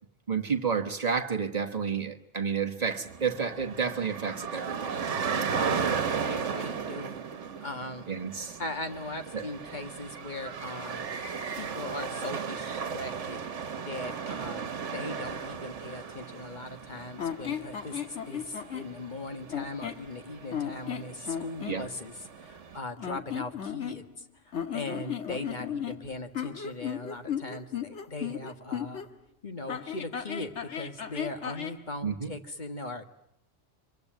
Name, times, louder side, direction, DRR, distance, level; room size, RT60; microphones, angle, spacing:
voice 1, 0.3-5.0 5.4-6.0 6.3-6.5 8.1-8.6 9.3-9.5 21.7-21.9 32.0-32.3, right 6 dB, 35° right, 1.4 m, -31 dB
sound 1, 2.9-22.8, right 6 dB, 70° right, 1.6 m, -36 dB
voice 2, 5.3-6.0 6.3-7.2 7.6-8.1 8.6-11.1 11.5-13.4 13.8-29.0 29.4-33.0, left 2 dB, 40° left, 1.8 m, -39 dB
sound 2, 17.2-18.9 19.5-20.1 20.5-21.8 23.0-24.2 24.5-29.1 29.7-31.8, left 9 dB, 70° left, 1.7 m, -35 dB
24.5 x 23.0 x 9.1 m
omnidirectional pair, 1.3 m